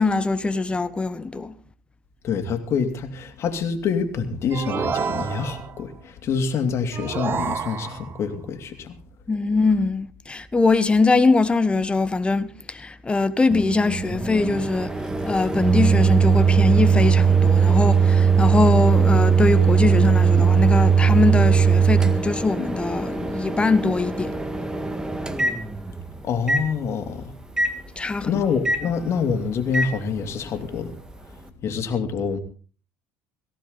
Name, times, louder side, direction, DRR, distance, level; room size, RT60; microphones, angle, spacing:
voice 1, 0.0-1.5 9.3-14.9 15.2-24.3 28.0-28.4, left 3 dB, 20° left, 1.4 m, -22 dB
voice 2, 2.2-9.0 26.2-27.3 28.2-31.0 31.6-32.4, left 5 dB, 50° left, 2.9 m, -26 dB
sound 1, 4.5-5.8 6.9-8.2, right 6 dB, 40° right, 1.1 m, -29 dB
Microwave oven, 13.5-26.0 26.5-26.6 27.6-27.7 28.6-28.8 29.7-29.9, right 6 dB, 10° right, 1.9 m, -19 dB
18.0 x 15.5 x 4.0 m
supercardioid pair, 80°, 6 cm